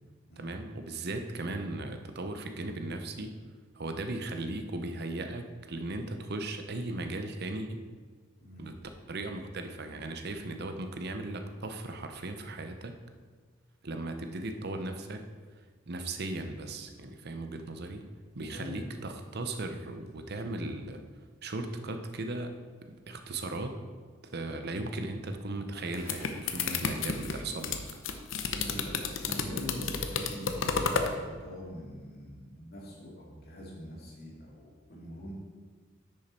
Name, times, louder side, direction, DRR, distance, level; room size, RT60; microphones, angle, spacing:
voice 1, 0.4-3.4 3.7-7.8 8.6-13.0 13.8-15.3 15.9-18.1 18.4-21.0 21.4-23.8 24.2-27.8, right 2 dB, 55° right, 7 dB, 0.8 m, -37 dB
voice 2, 18.3-18.7 28.5-35.3, left 1 dB, 50° left, -4 dB, 2.4 m, -43 dB
sound 1, 25.7-31.1, left 5 dB, 70° left, 0.8 m, -31 dB
10.0 x 6.5 x 4.4 m, 1.5 s
head